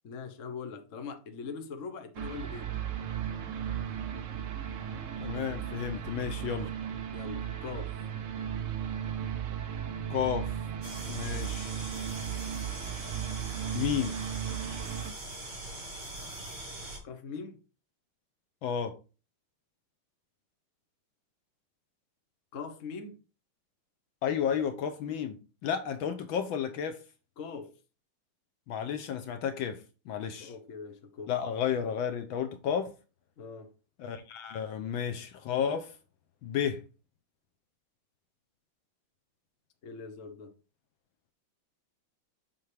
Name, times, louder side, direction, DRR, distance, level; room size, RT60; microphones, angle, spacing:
voice 1, 0.0-2.7 7.1-8.0 17.0-17.6 22.5-23.2 27.4-27.7 30.4-31.3 33.4-33.7 39.8-40.5, left 5 dB, 45° left, 1.2 m, -42 dB
sound 1, 2.1-15.1, right 9 dB, 75° right, 0.7 m, -36 dB
voice 2, 5.2-6.7 10.1-10.5 11.1-11.7 13.7-14.1 18.6-19.0 24.2-25.4 25.6-27.0 28.7-29.8 30.1-30.5 31.3-32.9 34.0-35.9 36.4-36.8, left 8 dB, 75° left, 1.5 m, -32 dB
sound 2, 10.8-17.0, right 1 dB, 55° right, 3.4 m, -42 dB
7.7 x 5.8 x 3.4 m
omnidirectional pair, 2.3 m